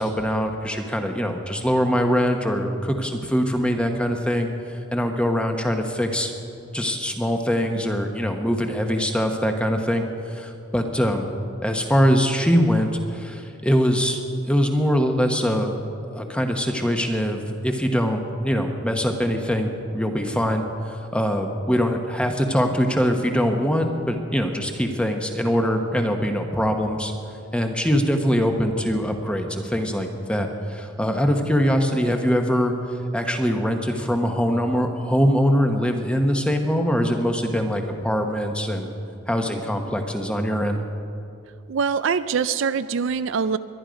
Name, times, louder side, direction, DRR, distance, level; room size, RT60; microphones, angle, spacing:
voice 1, 0.0-6.3 6.7-11.3 11.6-15.7 16.1-27.1 27.5-32.7 33.1-38.9 39.3-40.8, equal, 5° left, 4 dB, 1.0 m, -23 dB
voice 2, 41.7-43.6, right 6 dB, 60° right, 13 dB, 0.4 m, -23 dB
22.0 x 11.0 x 5.1 m, 2.6 s
head